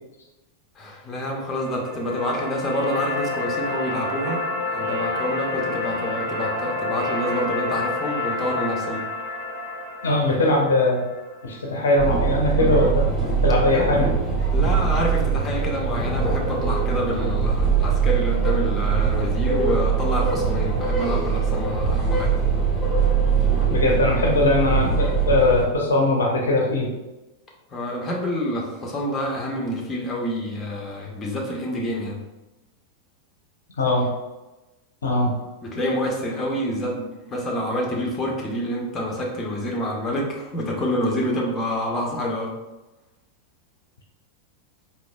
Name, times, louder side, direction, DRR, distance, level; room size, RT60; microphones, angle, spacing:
voice 1, 0.8-4.4 4.7-9.0 13.7-14.0 14.5-22.3 27.7-32.2 33.9-34.0 35.6-42.5, equal, 20° left, -1 dB, 0.8 m, -27 dB
sound 1, 1.5-11.6, left 2 dB, 80° right, 0.8 m, -29 dB
voice 2, 10.0-11.0 11.4-13.0 13.4-14.1 23.7-26.9 33.8-34.1 35.0-35.3, left 2 dB, 65° left, 0 dB, 0.6 m, -20 dB
sound 2, 12.0-25.7, right 5 dB, 5° left, 1.3 m, -22 dB
3.8 x 2.7 x 2.3 m, 1.0 s
figure-of-eight pair, 90°, 0 cm